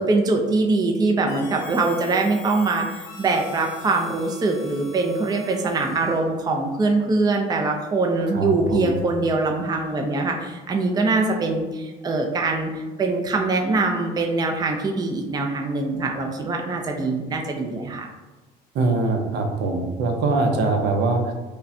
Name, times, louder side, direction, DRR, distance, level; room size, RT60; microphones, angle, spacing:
voice 1, 0.0-18.1, right 3 dB, 20° right, 2 dB, 0.5 m, -23 dB
Harmonica, 1.2-6.3, left 3 dB, 85° left, 0.7 m, -43 dB
voice 2, 8.3-8.9 18.7-21.3, right 3 dB, 65° right, 4 dB, 0.7 m, -23 dB
5.1 x 2.2 x 2.6 m, 1.2 s
supercardioid pair, 95°, 19 cm